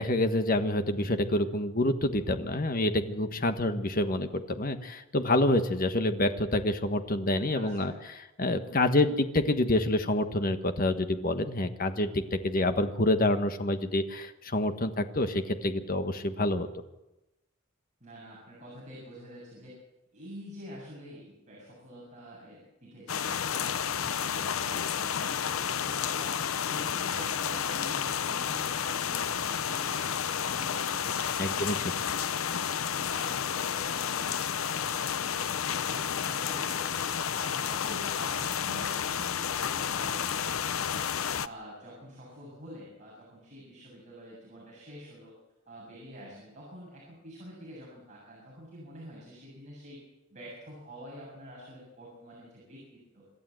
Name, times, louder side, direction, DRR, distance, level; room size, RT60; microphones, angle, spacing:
voice 1, 0.0-7.9 8.4-16.8 31.4-31.8, left 1 dB, 45° left, 8 dB, 1.4 m, -27 dB
voice 2, 7.5-8.0 18.0-19.8 20.1-32.6 32.9-35.5 35.8-37.1 37.3-41.1 41.4-45.3 45.7-50.0 50.3-53.3, equal, 35° right, -4 dB, 7.5 m, -47 dB
sound 1, 23.1-41.5, left 8 dB, 85° left, 0.7 m, -31 dB
27.0 x 12.5 x 7.9 m, 0.98 s
head